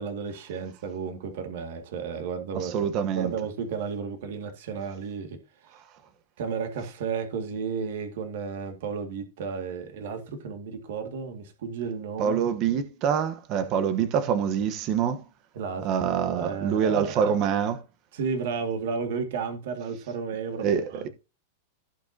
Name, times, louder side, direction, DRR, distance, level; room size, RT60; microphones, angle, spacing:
voice 1, 0.0-2.9 3.1-5.4 5.7-5.8 6.4-12.4 15.5-17.4 18.1-21.1, right 5 dB, 60° right, 2.0 m, -33 dB
voice 2, 2.5-3.3 12.2-15.2 15.8-17.8 20.6-21.1, right 7 dB, 30° right, 1.1 m, -25 dB
16.0 x 5.8 x 2.8 m
supercardioid pair, 170°, 0 cm